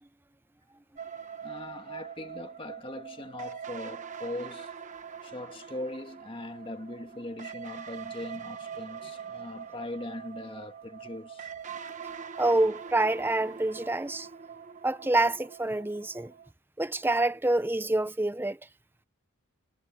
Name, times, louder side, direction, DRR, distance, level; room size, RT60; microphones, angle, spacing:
sound 1, 1.0-16.5, right 7 dB, 35° right, 1.1 m, -43 dB
voice 1, 1.4-4.7 5.2-11.5, left 1 dB, 25° left, 1.6 m, -40 dB
voice 2, 12.4-14.3 14.8-16.3 16.8-18.6, right 2 dB, 10° right, 0.6 m, -27 dB
head